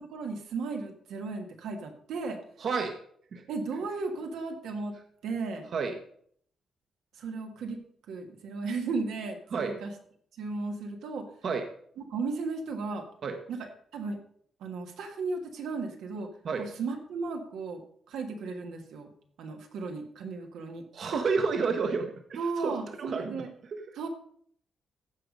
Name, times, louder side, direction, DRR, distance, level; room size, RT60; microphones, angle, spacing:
voice 1, 0.0-2.4 3.5-5.0 5.2-5.7 7.1-9.9 10.4-11.3 12.0-13.1 13.5-14.2 14.6-16.3 16.6-17.8 18.1-19.1 19.4-20.8 22.4-23.5 24.0-24.1, right 4 dB, 90° right, 3 dB, 1.7 m, -35 dB
voice 2, 2.6-3.0 3.3-3.4 5.7-6.0 9.5-9.8 11.4-11.7 13.2-13.4 16.4-16.7 20.9-23.4 23.7-23.8, right 5 dB, 55° right, 5 dB, 1.1 m, -30 dB
15.0 x 5.0 x 5.3 m, 0.62 s
cardioid pair, 125°, 0 cm